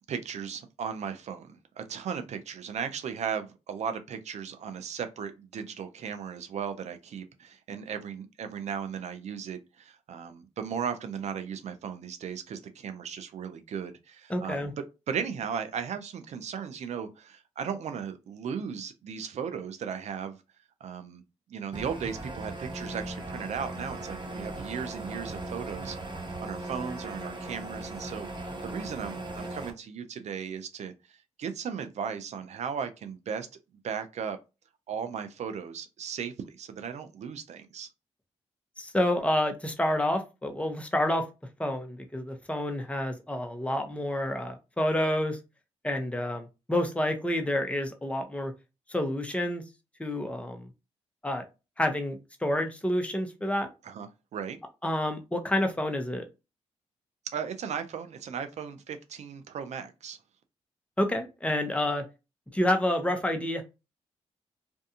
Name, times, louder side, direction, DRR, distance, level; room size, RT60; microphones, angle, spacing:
voice 1, 0.1-14.7 15.1-20.4 20.8-21.2 21.5-26.0 26.4-28.3 28.6-33.5 33.8-34.4 34.9-37.9 53.8-54.6 57.3-60.2, right 7 dB, 65° right, 0.5 m, -36 dB
voice 2, 14.3-14.7 38.8-41.2 41.6-45.4 45.8-48.5 48.9-49.6 50.0-50.7 51.2-51.4 51.8-53.7 54.8-56.2 61.0-62.0 62.5-63.6, left 1 dB, 10° left, 0.8 m, -28 dB
sound 1, 21.7-29.7, right 2 dB, 40° right, 1.0 m, -38 dB
2.6 x 2.3 x 2.7 m
supercardioid pair, 50°, 12 cm